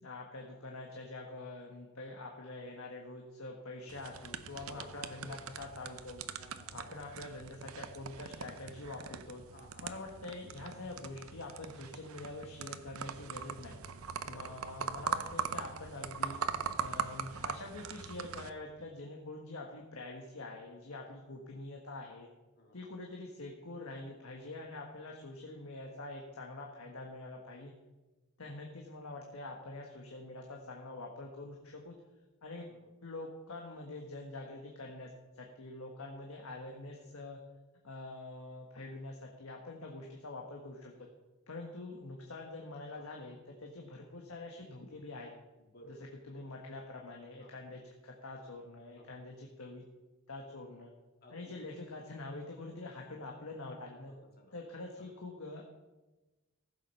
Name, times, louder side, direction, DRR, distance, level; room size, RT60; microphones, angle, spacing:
voice 1, 0.0-6.2 6.7-9.4 9.8-13.8 14.2-16.4 16.8-22.3 22.7-27.7 28.4-32.0 32.4-32.7 33.0-37.4 37.8-41.1 41.5-45.3 45.9-46.0 46.3-49.8 50.3-50.9 51.3-54.1 54.5-55.6, left 2 dB, 75° left, 0 dB, 1.5 m, -45 dB
sound 1, 3.9-18.5, right 6 dB, 75° right, 0.7 m, -41 dB
voice 2, 4.5-4.9 5.2-5.3 6.4-7.0 9.4-10.0 14.2-14.5 14.8-14.9 22.6-22.9 28.4-28.6 32.7-32.9 42.9-43.2 45.7-46.5 47.4-47.8 49.0-49.1 51.2-51.7 53.6-54.6 54.9-55.1, equal, 45° left, 2 dB, 2.2 m, -58 dB
15.0 x 7.6 x 5.5 m, 1.1 s
head